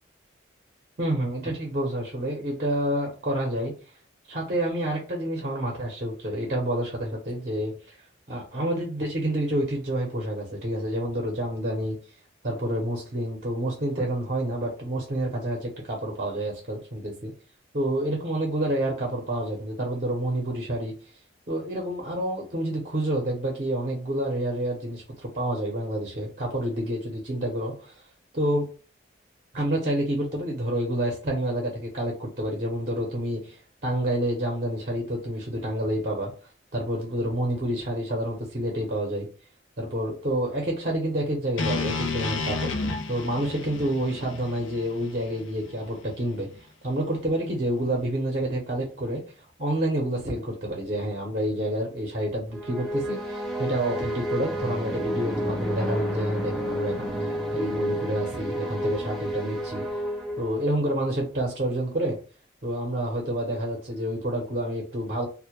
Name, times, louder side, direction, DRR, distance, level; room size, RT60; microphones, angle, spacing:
voice 1, 1.0-3.7 4.3-8.0 8.3-12.0 12.4-17.3 17.7-20.9 21.5-27.9 28.3-28.6 29.5-36.3 36.7-39.3 39.8-42.7 43.1-46.5 46.8-49.2 49.6-57.2 57.5-59.8 60.4-62.2 62.6-65.3, right 1 dB, 45° right, -1 dB, 0.6 m, -28 dB
sound 1, 41.6-45.7, left 4 dB, 85° left, 0.4 m, -31 dB
sound 2, 52.5-61.0, equal, ahead, 0.4 m, -30 dB
2.1 x 2.0 x 2.8 m, 0.36 s
head